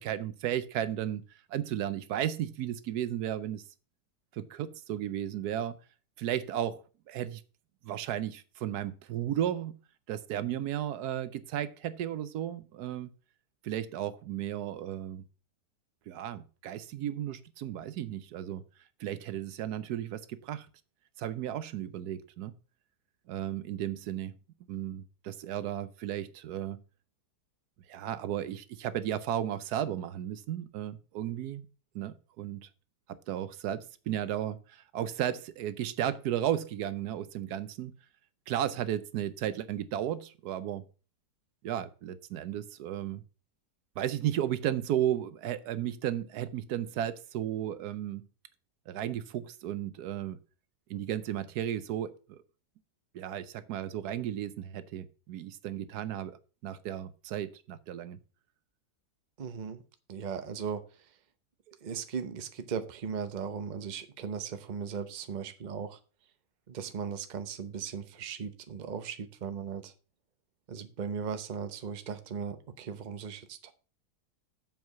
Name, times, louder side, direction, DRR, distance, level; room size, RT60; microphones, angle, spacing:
voice 1, 0.0-3.6 4.3-5.8 6.2-6.8 7.1-7.4 7.8-9.7 10.1-13.1 13.6-15.3 16.1-18.6 19.0-20.7 21.2-22.5 23.3-24.3 24.7-26.8 27.9-31.7 31.9-32.7 33.1-37.9 38.5-40.8 41.6-43.2 44.0-48.3 48.9-50.4 50.9-52.4 53.1-56.4 56.6-58.2, right 11 dB, 80° right, 1.2 m, -34 dB
voice 2, 59.4-59.8 60.1-61.1 61.7-66.0 66.7-69.9 70.7-73.7, right 6 dB, 40° right, 0.7 m, -37 dB
7.6 x 4.6 x 6.8 m
omnidirectional pair, 1.7 m